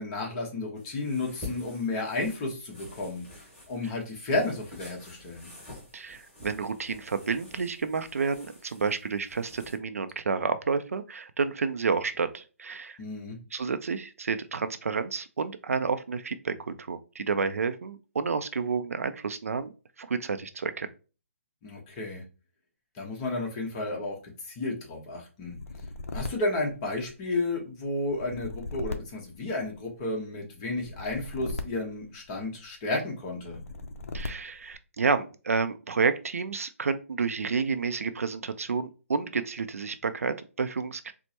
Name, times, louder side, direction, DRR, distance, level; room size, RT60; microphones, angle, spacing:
voice 1, 0.0-3.2 3.7-5.5 13.0-13.4 21.6-22.2 23.0-24.2 24.4-25.5 26.1-33.6, left 2 dB, 25° left, 0 dB, 1.0 m, -32 dB
sound 1, 0.7-9.7, left 2 dB, 5° left, 1.7 m, -48 dB
voice 2, 5.9-13.0 13.5-19.7 20.0-20.9 34.1-41.1, right 5 dB, 75° right, 11 dB, 0.4 m, -30 dB
sound 2, 25.4-27.4 28.1-30.0 30.7-32.7 33.4-34.7, left 3 dB, 70° left, 0.5 m, -39 dB
4.4 x 2.1 x 2.8 m, 0.34 s
hypercardioid pair, 150°, 8 cm